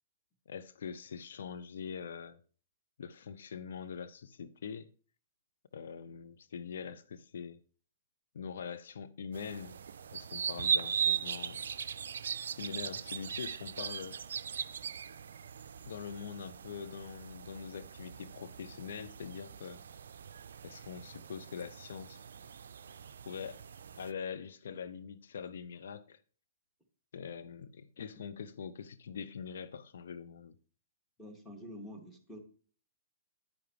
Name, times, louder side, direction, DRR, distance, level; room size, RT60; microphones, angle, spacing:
voice 1, 0.5-2.4 3.0-4.9 5.7-7.6 8.3-9.8 10.1-11.6 12.6-14.2 15.8-19.8 20.6-22.2 23.3-23.6 24.0-26.2 27.1-30.6, left 6 dB, 65° left, 0.5 m, -43 dB
sound 1, 9.3-24.1, right 7 dB, 65° right, 0.4 m, -39 dB
voice 2, 31.2-32.4, equal, 5° left, 2.2 m, -47 dB
9.8 x 9.3 x 3.1 m
figure-of-eight pair, 115°, 0 cm